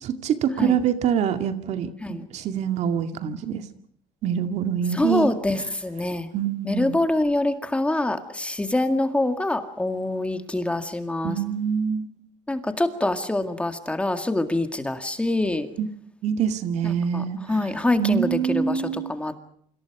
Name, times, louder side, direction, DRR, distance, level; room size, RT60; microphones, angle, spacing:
voice 1, 0.0-3.6 4.2-5.3 6.3-6.9 11.2-12.1 15.8-15.9 16.2-17.4 18.0-19.1, right 8 dB, 60° right, 8 dB, 2.3 m, -25 dB
voice 2, 4.9-6.3 6.6-11.4 12.5-15.7 16.8-19.4, left 2 dB, 10° left, 7 dB, 2.0 m, -25 dB
28.5 x 26.0 x 4.9 m, 0.62 s
cardioid pair, 130°, 13 cm